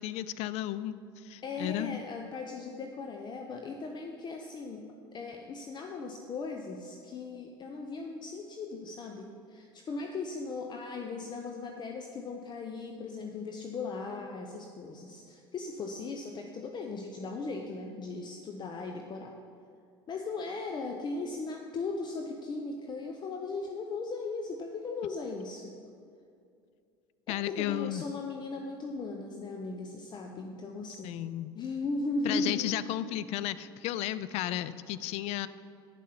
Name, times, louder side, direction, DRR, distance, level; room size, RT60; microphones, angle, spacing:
voice 1, 0.0-2.0 27.3-28.0 31.0-31.5 32.2-35.5, left 13 dB, 55° left, 15 dB, 0.4 m, -33 dB
voice 2, 1.4-19.4 20.1-25.7 27.3-31.2 31.5-32.7, left 3 dB, 35° left, 3 dB, 0.8 m, -38 dB
9.2 x 7.3 x 5.7 m, 2.4 s
hypercardioid pair, 80°, 13 cm